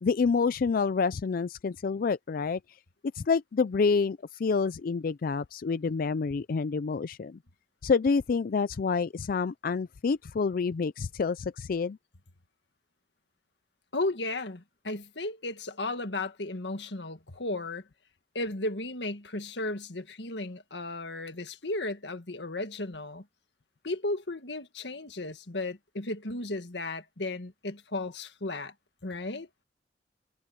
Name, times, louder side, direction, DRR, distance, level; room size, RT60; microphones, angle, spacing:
voice 1, 0.0-2.6 3.1-7.4 7.8-12.0, left 5 dB, 55° left, 0.4 m, -28 dB
voice 2, 13.9-17.8 18.4-23.2 23.8-28.7 29.0-29.5, left 2 dB, 80° left, 1.8 m, -34 dB
head